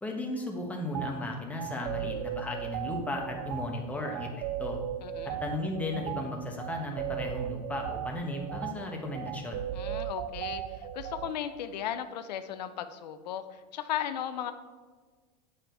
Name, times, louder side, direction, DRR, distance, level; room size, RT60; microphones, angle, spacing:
voice 1, 0.0-4.8 5.4-9.6, left 1 dB, 5° left, 1 dB, 1.1 m, -35 dB
sound 1, 0.9-1.1 1.6-11.3, right 11 dB, 65° right, 0.5 m, -37 dB
voice 2, 5.0-5.4 9.7-14.5, left 10 dB, 85° left, 10 dB, 0.6 m, -36 dB
7.6 x 5.2 x 4.5 m, 1.4 s
supercardioid pair, 130°, 21 cm